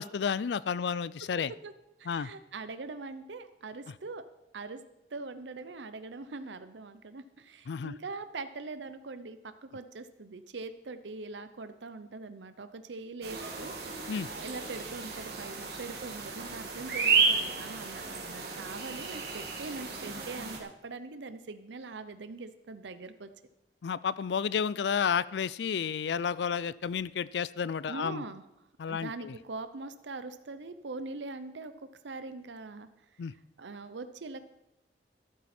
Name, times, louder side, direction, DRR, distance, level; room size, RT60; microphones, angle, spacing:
voice 1, 0.0-1.5 2.1-2.3 7.7-7.9 14.1-14.3 23.8-28.2 28.8-29.3 33.2-33.3, left 7 dB, 75° left, 19 dB, 0.4 m, -31 dB
voice 2, 1.4-1.7 2.0-4.2 4.5-4.8 5.1-23.3 27.9-28.4 28.9-31.7 32.0-32.9 33.6-34.4, right 3 dB, 90° right, 11 dB, 0.7 m, -42 dB
sound 1, 13.2-20.6, right 4 dB, 60° right, 2.1 m, -32 dB
13.0 x 12.0 x 4.3 m, 0.90 s
head